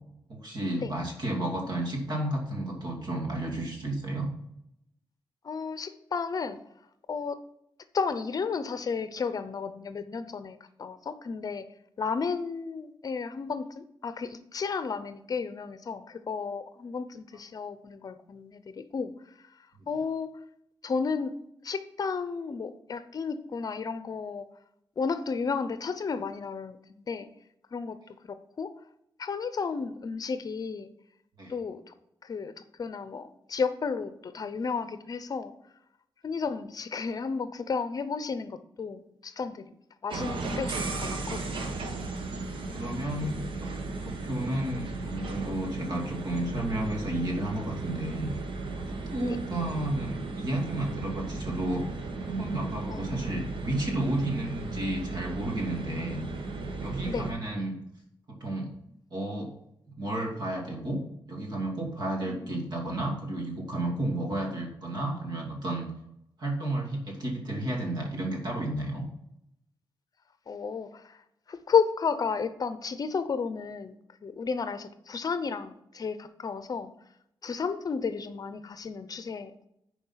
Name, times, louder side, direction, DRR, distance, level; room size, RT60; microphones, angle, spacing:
voice 1, 0.3-4.3 31.4-31.5 42.7-43.7 44.0-48.3 48.8-56.2 56.8-57.8 58.3-58.7 59.1-59.5 60.0-61.0 61.3-65.9 66.4-69.0, right 1 dB, 55° right, 0 dB, 2.6 m, -32 dB
voice 2, 5.4-6.6 7.1-7.4 7.9-11.7 12.0-19.1 19.4-19.5 19.9-20.4 20.8-21.4 21.6-24.5 25.0-27.3 27.7-28.7 29.2-30.9 31.5-31.9 32.2-32.5 32.8-35.5 36.2-39.7 40.0-41.4 49.3-49.4 52.9-53.4 57.1-57.3 62.2-62.7 70.5-71.2 71.5-74.0 74.2-76.9 77.4-79.7, left 5 dB, 45° left, 11 dB, 0.6 m, -33 dB
sound 1, 40.1-57.3, right 3 dB, 90° right, 1.3 m, -35 dB
10.0 x 4.6 x 5.7 m, 0.79 s
wide cardioid pair, 135°, 8 cm